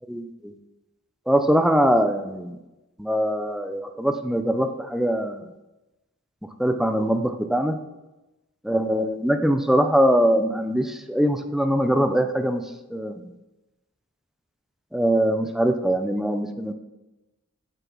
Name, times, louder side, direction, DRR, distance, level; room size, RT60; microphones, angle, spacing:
voice 1, 0.1-0.5 1.3-2.6 3.0-5.4 6.6-7.8 8.6-12.6 12.9-13.3 14.9-16.7, equal, ahead, 8 dB, 0.6 m, -22 dB
7.4 x 6.9 x 6.2 m, 1.0 s
head